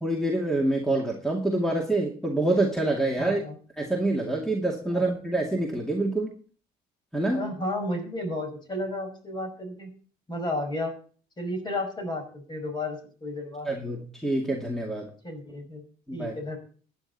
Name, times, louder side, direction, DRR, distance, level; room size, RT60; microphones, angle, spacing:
voice 1, 0.0-3.4 3.8-6.3 7.1-7.5 13.7-15.1 16.1-16.3, right 2 dB, 5° left, 1 dB, 2.3 m, -26 dB
voice 2, 3.2-3.6 4.9-5.0 7.3-9.9 10.3-10.9 11.4-13.7 15.2-15.8 16.1-16.6, left 1 dB, 25° left, 6 dB, 5.4 m, -32 dB
15.0 x 10.5 x 4.2 m, 0.41 s
cardioid pair, 110°, 17 cm